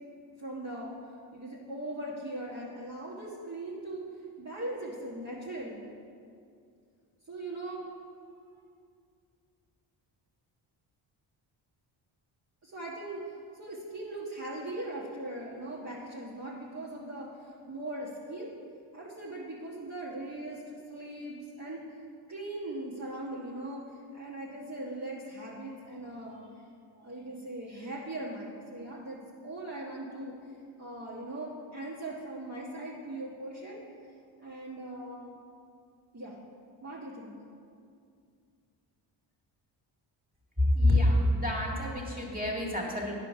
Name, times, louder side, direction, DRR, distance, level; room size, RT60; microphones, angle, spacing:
voice 1, 0.4-0.9 1.3-4.1 4.4-5.8 7.3-7.9 12.6-18.6 18.9-21.9 22.3-23.8 24.1-26.4 26.9-29.2 29.4-30.3 30.8-33.8 34.4-35.4 36.1-36.4 36.8-37.3, right 1 dB, 35° right, -6 dB, 1.4 m, -40 dB
voice 2, 40.6-43.1, left 1 dB, 20° right, -2 dB, 2.1 m, -26 dB
10.5 x 5.0 x 5.7 m, 2.3 s
cardioid pair, 85°, 47 cm